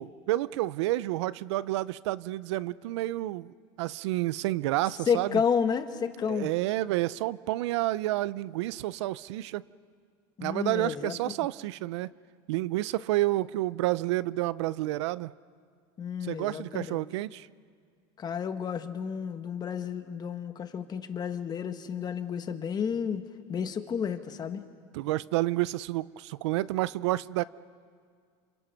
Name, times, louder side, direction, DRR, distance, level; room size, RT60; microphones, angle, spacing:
voice 1, 0.0-5.4 6.3-9.6 10.4-12.1 12.5-15.3 16.2-17.5 24.9-27.4, right 17 dB, 85° right, 19 dB, 0.5 m, -30 dB
voice 2, 5.1-6.5 10.4-11.2 16.0-17.0 18.2-23.2 23.5-24.6, left 7 dB, 30° left, 9 dB, 1.4 m, -31 dB
28.0 x 27.5 x 5.8 m, 2.1 s
supercardioid pair, 130°, 14 cm